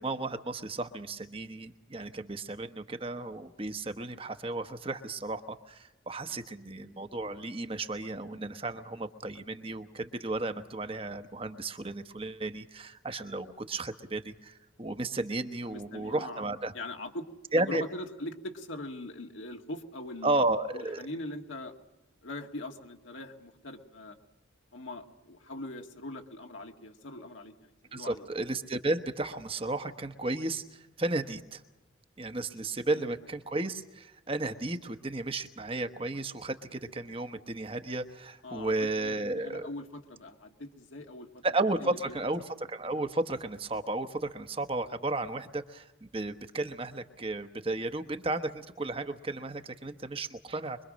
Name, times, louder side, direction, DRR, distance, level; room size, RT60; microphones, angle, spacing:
voice 1, 0.0-16.7 17.5-17.8 20.2-21.0 27.9-31.6 32.2-39.7 41.4-50.8, right 2 dB, 30° right, 8 dB, 1.1 m, -33 dB
voice 2, 15.6-16.4 16.7-17.3 17.6-20.3 20.7-21.7 22.2-24.2 24.7-28.2 32.6-33.1 38.4-41.4 41.8-42.2, left 1 dB, 80° left, 3 dB, 2.1 m, -42 dB
24.5 x 23.0 x 6.4 m, 0.99 s
head